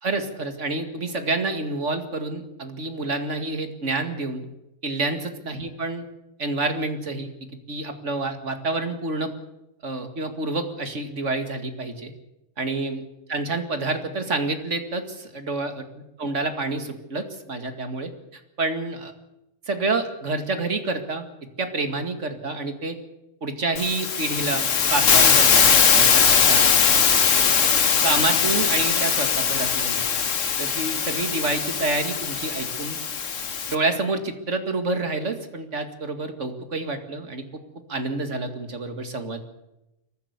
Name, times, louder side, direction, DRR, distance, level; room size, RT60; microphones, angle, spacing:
voice 1, 0.0-4.4 4.8-6.0 6.4-7.3 7.7-9.3 9.8-12.1 12.6-15.9 16.2-18.1 18.6-19.1 19.7-21.2 21.6-23.0 23.4-27.0 28.0-30.0 30.6-33.0 33.7-37.4 37.9-39.4, right 3 dB, 75° right, 7 dB, 2.5 m, -28 dB
Hiss, 23.8-33.8, left 6 dB, 85° left, 1.7 m, -20 dB
22.5 x 15.0 x 8.2 m, 0.90 s
omnidirectional pair, 1.3 m